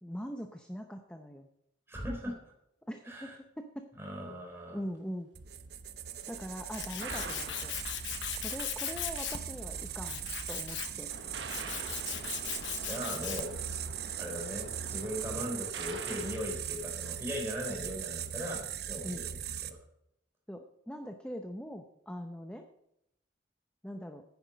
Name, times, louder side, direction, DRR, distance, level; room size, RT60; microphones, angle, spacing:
voice 1, 0.0-1.5 2.9-3.9 4.7-5.3 6.3-7.8 8.4-11.1 19.0-19.3 20.5-22.7 23.8-24.2, equal, 5° left, 4 dB, 0.7 m, -42 dB
voice 2, 1.9-2.4 3.0-3.4 4.0-4.8 12.8-13.6 14.2-19.8, equal, 15° right, 0 dB, 3.7 m, -39 dB
sound 1, 5.3-19.7, right 9 dB, 55° right, 0.8 m, -40 dB
Tools, 6.2-13.6, left 10 dB, 80° left, 1.0 m, -39 dB
sound 2, 7.0-8.4 11.1-17.7, right 4 dB, 75° right, 1.2 m, -45 dB
10.5 x 9.6 x 5.1 m, 0.80 s
head